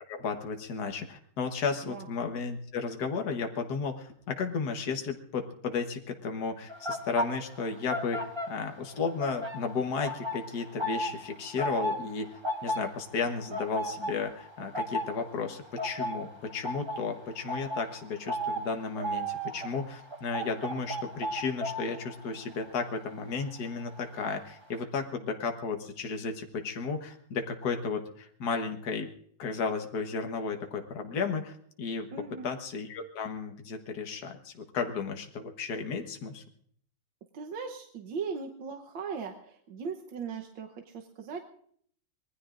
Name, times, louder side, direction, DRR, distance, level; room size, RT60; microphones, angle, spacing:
voice 1, 0.1-12.3 12.6-29.1 29.4-32.1 32.4-36.4, left 5 dB, 55° left, 4 dB, 1.8 m, -34 dB
sound 1, 6.7-8.9 9.2-24.0 24.3-24.6, equal, 25° right, 0.6 m, -35 dB
voice 2, 32.1-32.5 37.3-41.4, right 5 dB, 75° right, 2 dB, 1.8 m, -38 dB
25.5 x 20.0 x 2.5 m, 0.62 s
omnidirectional pair, 2.1 m